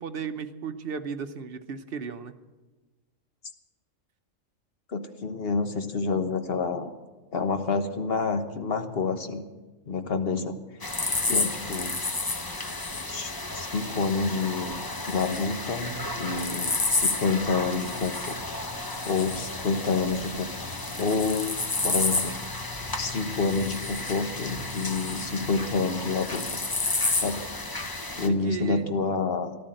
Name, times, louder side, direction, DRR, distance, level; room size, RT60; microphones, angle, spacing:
voice 1, 0.0-2.3 28.2-28.9, right 6 dB, 50° right, 8 dB, 1.0 m, -35 dB
voice 2, 4.9-6.9 7.3-9.4 9.9-10.6 10.8-10.9 11.2-11.9 13.1-14.8 15.0-18.4 19.0-20.5 21.0-21.5 21.8-22.4 23.0-26.5 27.1-27.4 28.2-29.6, left 4 dB, 50° left, 7 dB, 1.3 m, -28 dB
sound 1, 10.8-28.3, left 3 dB, 20° left, 0.8 m, -31 dB
14.5 x 12.0 x 7.7 m, 1.2 s
omnidirectional pair, 1.4 m